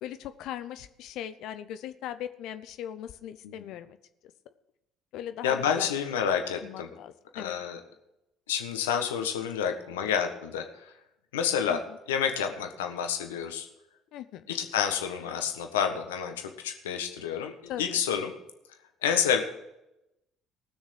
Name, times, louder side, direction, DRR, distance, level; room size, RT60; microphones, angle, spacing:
voice 1, 0.0-4.0 5.1-5.9 6.6-7.5 11.7-11.8 14.1-14.4 17.7-18.0, left 11 dB, 65° left, 11 dB, 0.7 m, -39 dB
voice 2, 5.4-6.9 7.3-7.8 8.5-10.9 11.3-11.8 12.1-13.7 14.5-18.3 19.0-19.4, left 8 dB, 80° left, 5 dB, 1.4 m, -29 dB
18.0 x 6.4 x 6.4 m, 0.87 s
hypercardioid pair, 55°, 0 cm